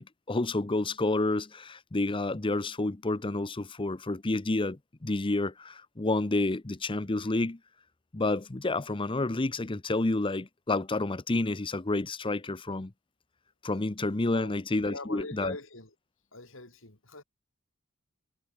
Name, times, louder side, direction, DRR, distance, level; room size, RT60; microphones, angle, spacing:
voice 1, 0.0-7.6 8.1-12.9 13.6-15.6, left 2 dB, 25° left, 0.8 m, -29 dB
voice 2, 14.9-15.9 16.3-17.2, left 2 dB, 70° left, 5.6 m, -43 dB
head